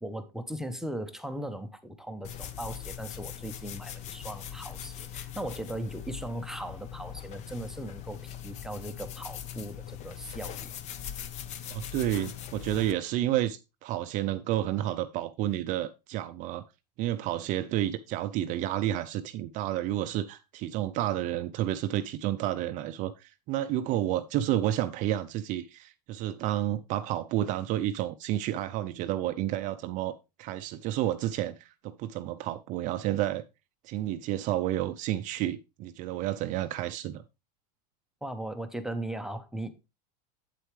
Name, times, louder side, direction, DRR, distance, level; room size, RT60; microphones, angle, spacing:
voice 1, 0.0-10.7 38.2-39.7, right 1 dB, ahead, 0.7 m, -38 dB
sound 1, 2.2-12.9, left 10 dB, 35° left, 0.7 m, -41 dB
voice 2, 11.7-16.6 17.0-33.4 33.8-37.2, right 13 dB, 40° right, 0.5 m, -30 dB
8.4 x 8.0 x 3.1 m
supercardioid pair, 140°, 21 cm